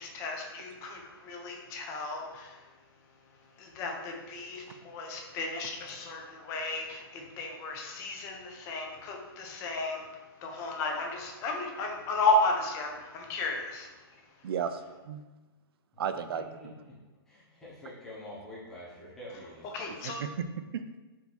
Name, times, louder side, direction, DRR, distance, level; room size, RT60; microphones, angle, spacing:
voice 1, 0.0-2.6 3.6-13.9 19.7-20.2, left 2 dB, 20° left, 1 dB, 0.5 m, -33 dB
voice 2, 14.4-15.2 16.0-16.7 20.0-20.5 20.7-20.8, right 7 dB, 65° right, 9 dB, 0.4 m, -34 dB
voice 3, 16.6-16.9 17.3-19.6, left 1 dB, 5° left, -8 dB, 1.0 m, -46 dB
4.5 x 2.7 x 4.1 m, 1.2 s
hypercardioid pair, 160°, 13 cm